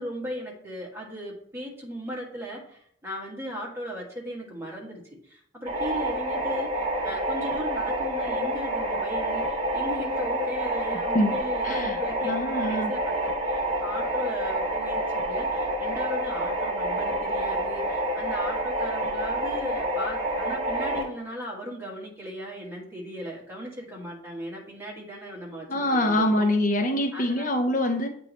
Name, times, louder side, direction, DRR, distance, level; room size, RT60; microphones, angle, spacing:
voice 1, 0.0-26.5 27.1-27.5, equal, 10° right, -4 dB, 1.5 m, -37 dB
sound 1, 5.7-21.0, right 1 dB, 30° right, 0.9 m, -28 dB
voice 2, 11.6-12.9 25.7-28.1, left 1 dB, 40° left, 4 dB, 0.6 m, -25 dB
8.1 x 3.1 x 4.0 m, 0.66 s
head